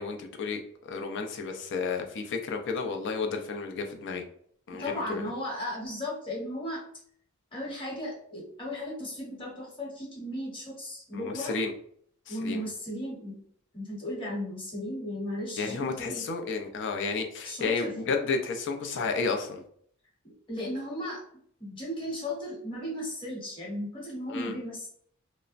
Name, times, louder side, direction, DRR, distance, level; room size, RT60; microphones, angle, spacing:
voice 1, 0.0-4.2 4.7-5.2 11.1-11.7 12.3-12.6 15.6-19.6 24.3-24.5, left 4 dB, 55° left, 4 dB, 0.4 m, -32 dB
voice 2, 4.7-6.8 7.5-11.6 12.3-13.4 13.7-16.2 17.4-18.0 20.5-21.2 21.6-24.9, left 1 dB, 25° left, -4 dB, 1.0 m, -35 dB
3.1 x 2.0 x 2.5 m, 0.63 s
head